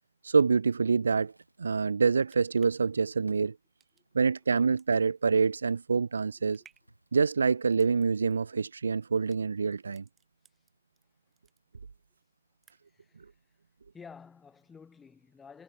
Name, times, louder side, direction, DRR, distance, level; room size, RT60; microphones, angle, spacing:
voice 1, 0.2-1.3 1.6-3.5 4.1-6.6 7.1-10.0, right 5 dB, 65° right, 0.6 m, -26 dB
Drawer open or close, 0.9-4.2 5.1-6.0 6.4-7.4 7.7-7.8, right 1 dB, 90° right, 4.9 m, -57 dB
sound 1, 2.3-11.0 11.3-12.1 12.4-13.1 13.4-13.5, right 8 dB, 10° right, 7.2 m, -65 dB
voice 2, 12.9-13.4 13.9-15.6, left 6 dB, 10° left, 7.9 m, -51 dB
figure-of-eight pair, 135°, 0 cm